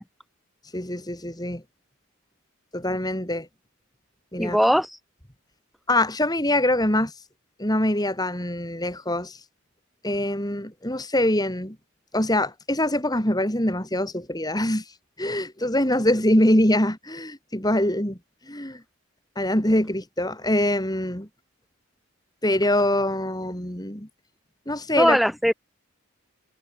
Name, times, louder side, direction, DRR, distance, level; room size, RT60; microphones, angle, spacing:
voice 1, 0.7-1.6 2.7-3.5 4.3-4.6 5.9-7.1 7.6-9.4 10.0-11.8 12.1-14.8 15.2-18.2 18.5-18.8 19.4-21.3 22.4-24.1 24.7-25.2, left 1 dB, 15° left, 3.9 m, -24 dB
voice 2, 4.4-5.0 25.0-25.5, equal, ahead, 2.9 m, -20 dB
head